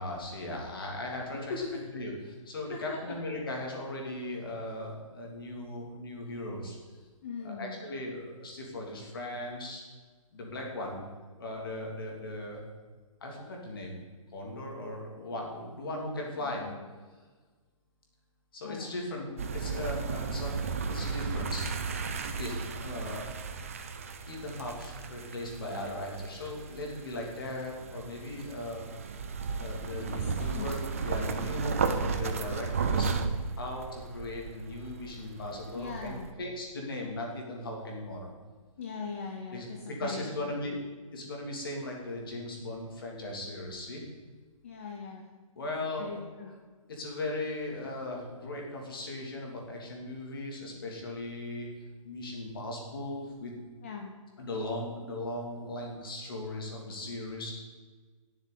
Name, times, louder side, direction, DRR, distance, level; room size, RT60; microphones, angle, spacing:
voice 1, 0.0-2.1 2.4-6.8 7.4-9.8 10.3-11.0 11.4-12.6 13.2-13.9 14.3-16.6 18.5-21.6 22.4-23.2 24.3-28.8 29.6-30.8 31.0-33.1 33.6-38.3 39.5-40.8 41.1-44.0 45.5-46.1 46.9-51.7 52.0-53.5 54.4-57.6, left 1 dB, 40° left, 0 dB, 3.0 m, -38 dB
voice 2, 1.3-1.9 2.7-3.2 7.2-7.9 16.4-16.9 18.6-19.0 30.1-30.8 35.7-36.4 38.8-40.5 44.6-45.3 45.6-45.7 46.0-46.5 53.8-54.1, left 5 dB, 20° left, 1 dB, 0.8 m, -40 dB
sound 1, 19.4-36.3, right 5 dB, 25° right, 0.6 m, -35 dB
11.0 x 7.2 x 8.4 m, 1.4 s
hypercardioid pair, 175°, 18 cm